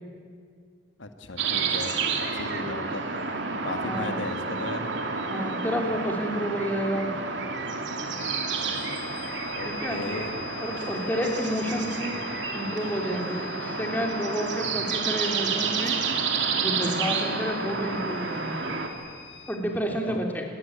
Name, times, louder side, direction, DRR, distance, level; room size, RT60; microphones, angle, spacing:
voice 1, 1.0-1.9 2.3-3.0 3.6-4.9 8.5-8.8 9.5-10.3 20.1-20.2, left 2 dB, 85° left, 7 dB, 1.8 m, -36 dB
sound 1, 1.4-18.9, right 4 dB, 70° right, 2.8 m, -30 dB
voice 2, 5.3-7.1 9.6-10.0 10.6-12.2 12.5-16.0 16.6-18.5 19.5-20.4, equal, 10° left, 1 dB, 3.4 m, -30 dB
sound 2, 8.1-19.6, left 9 dB, 50° left, 4.2 m, -44 dB
28.0 x 21.0 x 9.0 m, 2.1 s
head